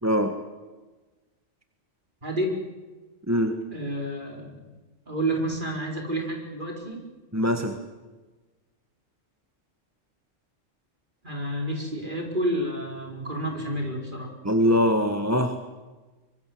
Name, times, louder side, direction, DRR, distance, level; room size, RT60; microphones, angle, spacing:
voice 1, 0.0-0.3 3.3-3.5 7.3-7.8 14.4-15.6, equal, 10° right, 6 dB, 1.5 m, -22 dB
voice 2, 2.2-2.6 3.7-4.6 5.1-7.0 11.2-14.3, right 1 dB, 40° right, 2 dB, 5.1 m, -30 dB
24.5 x 23.0 x 7.9 m, 1.2 s
omnidirectional pair, 1.3 m